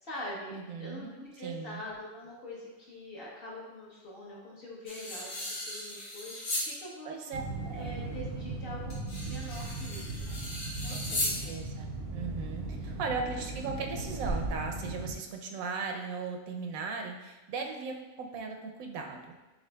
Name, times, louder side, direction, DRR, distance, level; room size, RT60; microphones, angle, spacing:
voice 1, 0.0-7.2 7.7-10.4 10.8-11.5, equal, 50° left, -5 dB, 1.0 m, -44 dB
voice 2, 0.5-1.8 7.1-8.0 10.9-19.5, right 4 dB, 90° right, 3 dB, 1.0 m, -38 dB
sound 1, 4.9-6.7 7.2-7.3 8.9-11.4, left 1 dB, 70° left, 1.4 m, -36 dB
sound 2, 7.3-15.1, right 2 dB, 65° right, 0.7 m, -37 dB
6.8 x 2.5 x 2.2 m, 1.1 s
omnidirectional pair, 1.4 m